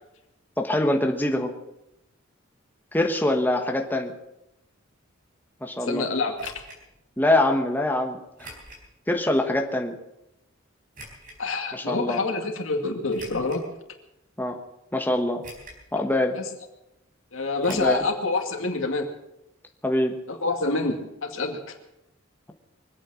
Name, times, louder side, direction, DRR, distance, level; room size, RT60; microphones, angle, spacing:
voice 1, 0.6-1.5 2.9-4.1 5.6-6.1 7.2-8.5 9.1-9.9 11.7-12.2 14.4-14.6 14.9-15.4 15.9-16.4 17.7-18.0 19.8-20.2, left 1 dB, 10° left, 3 dB, 1.3 m, -24 dB
voice 2, 5.9-6.5 11.4-13.6 16.3-16.4 17.3-19.1 20.3-21.6, left 3 dB, 85° left, 4 dB, 2.3 m, -27 dB
sound 1, 6.4-6.8 8.4-8.9 9.4-9.5 10.9-11.4 13.1-13.7 14.3-14.4 15.4-15.9 16.2-16.3 17.6-18.1 18.3-18.4 18.7-18.8, right 1 dB, 45° right, 4.4 m, -44 dB
24.0 x 8.9 x 6.3 m, 0.87 s
head